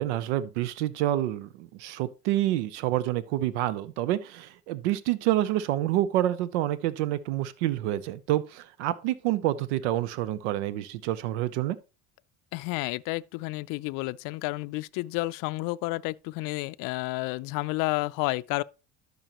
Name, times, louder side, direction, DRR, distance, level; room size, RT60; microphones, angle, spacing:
voice 1, 0.0-11.8, right 14 dB, 90° right, 0.7 m, -28 dB
voice 2, 12.5-18.6, left 22 dB, 70° left, 0.5 m, -31 dB
12.5 x 5.4 x 2.9 m
supercardioid pair, 85°, 34 cm